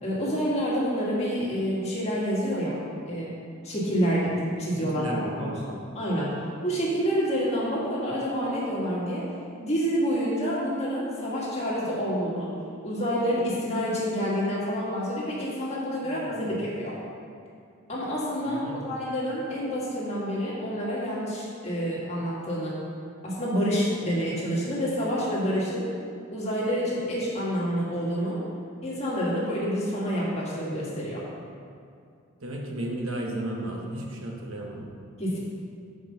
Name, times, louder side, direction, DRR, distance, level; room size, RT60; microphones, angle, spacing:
voice 1, 0.0-2.8 3.1-3.3 3.6-5.5 6.0-6.4 6.6-9.2 9.6-12.5 12.8-17.0 17.9-22.7 23.2-25.9 26.3-28.4 28.8-31.2 35.2-35.4, equal, 30° left, -6 dB, 1.7 m, -28 dB
voice 2, 4.8-5.6 16.0-16.5 18.4-18.8 32.4-34.8, right 1 dB, 90° right, 0 dB, 1.1 m, -34 dB
5.5 x 5.1 x 6.6 m, 2.3 s
head